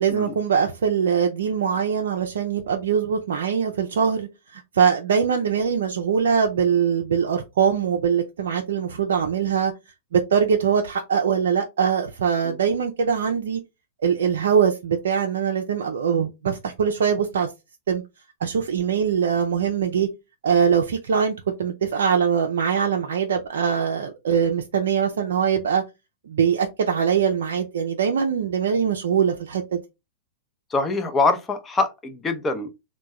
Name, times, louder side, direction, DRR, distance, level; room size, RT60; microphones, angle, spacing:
voice 1, 0.0-9.7 10.1-13.6 14.0-17.5 17.9-18.0 18.4-20.1 20.4-25.8 26.3-29.8, right 7 dB, 75° right, 0.4 m, -22 dB
voice 2, 30.7-32.7, left 3 dB, 20° left, 0.7 m, -24 dB
3.4 x 2.2 x 3.0 m
hypercardioid pair, 110°, 0 cm